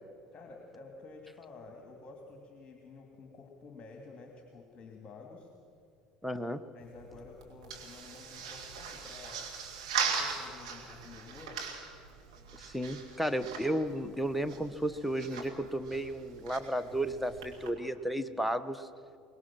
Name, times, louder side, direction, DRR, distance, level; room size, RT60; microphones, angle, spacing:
voice 1, 0.3-5.5 6.7-9.5 10.0-11.6, left 3 dB, 30° left, 2 dB, 2.8 m, -51 dB
voice 2, 6.2-6.6 12.6-18.9, right 1 dB, ahead, 9 dB, 1.1 m, -33 dB
sound 1, 6.8-17.7, right 6 dB, 75° right, 3.0 m, -40 dB
24.0 x 20.0 x 6.2 m, 2.4 s
figure-of-eight pair, 65°, 3 cm